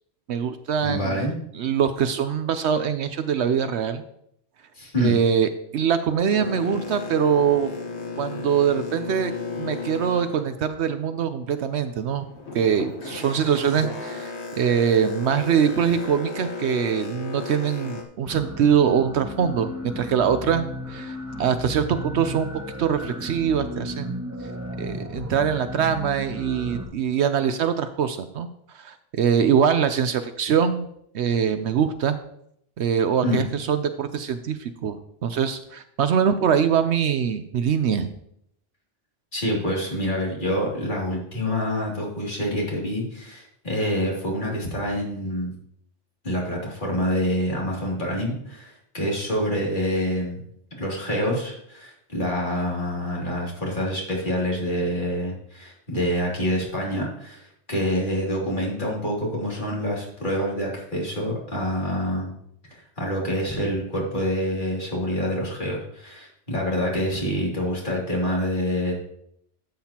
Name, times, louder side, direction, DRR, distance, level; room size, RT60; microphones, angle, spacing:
voice 1, 0.3-4.0 5.0-7.7 8.2-9.3 9.6-12.3 12.5-22.5 22.8-24.2 24.8-28.5 28.7-30.9 31.1-32.2 32.8-38.1, right 7 dB, 70° right, 10 dB, 0.9 m, -23 dB
voice 2, 0.8-1.4 4.7-5.1 33.2-33.4 39.3-45.5 46.2-50.4 50.8-62.3 62.7-68.9, equal, 40° left, -3 dB, 2.9 m, -26 dB
Boat Water vehicle, 6.3-11.3 11.7-18.0, left 3 dB, 65° left, 1.6 m, -34 dB
sound 1, 18.3-26.8, left 1 dB, 15° right, 1.2 m, -35 dB
12.5 x 7.6 x 2.9 m, 0.72 s
omnidirectional pair, 1.2 m